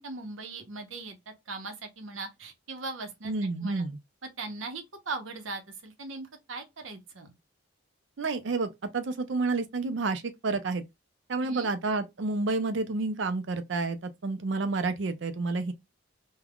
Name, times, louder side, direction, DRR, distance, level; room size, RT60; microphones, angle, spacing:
voice 1, 0.0-3.3 3.6-3.8 4.2-7.3 11.4-11.7, right 3 dB, 85° right, 0.8 m, -39 dB
voice 2, 3.3-4.0 8.2-10.8 11.3-15.7, right 3 dB, 70° right, 0.5 m, -30 dB
3.5 x 2.2 x 2.3 m
head